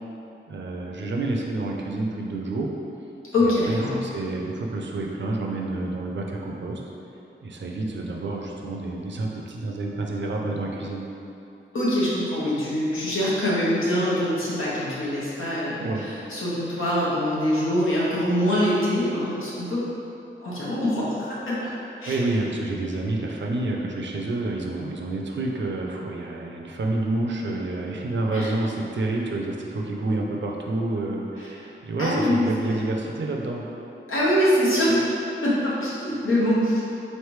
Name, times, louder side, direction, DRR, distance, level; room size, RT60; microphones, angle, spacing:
voice 1, 0.5-2.7 3.4-6.8 7.4-11.1 15.8-16.1 22.1-33.6, right 2 dB, 65° right, -1 dB, 0.5 m, -28 dB
voice 2, 3.3-4.0 11.7-19.8 20.4-21.7 22.0-22.1 28.3-28.5 32.0-32.8 34.1-35.0 35.4-36.8, left 1 dB, 90° left, -8 dB, 1.0 m, -24 dB
4.0 x 3.3 x 3.1 m, 2.8 s
wide cardioid pair, 105°, 20 cm